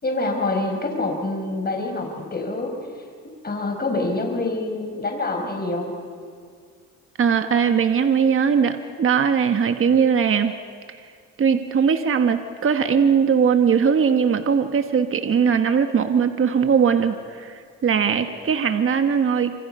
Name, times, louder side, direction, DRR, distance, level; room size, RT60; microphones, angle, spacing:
voice 1, 0.0-2.7 3.4-5.9, left 2 dB, 30° left, 3 dB, 5.0 m, -26 dB
voice 2, 7.2-10.5 11.4-19.5, right 6 dB, 45° right, 8 dB, 1.4 m, -20 dB
27.5 x 26.0 x 5.6 m, 2.2 s
cardioid pair, 90°, 30 cm